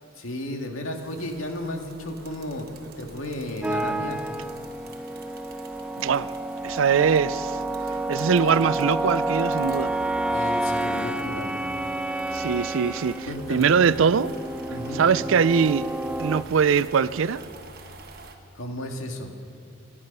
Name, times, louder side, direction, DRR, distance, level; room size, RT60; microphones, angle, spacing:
voice 1, 0.2-2.7 3.0-4.2 10.3-11.6 13.3-13.7 14.7-15.1 18.5-19.3, left 1 dB, 85° left, 2.0 m, -33 dB
sound 1, 0.9-18.4, right 2 dB, 50° right, 1.3 m, -46 dB
sound 2, 3.6-16.4, right 1 dB, 5° right, 0.3 m, -29 dB
voice 2, 6.0-6.3 6.6-7.6 8.1-9.9 12.3-14.3 14.9-15.9 16.2-17.4, right 6 dB, 75° right, 0.4 m, -22 dB
27.0 x 9.7 x 5.4 m
head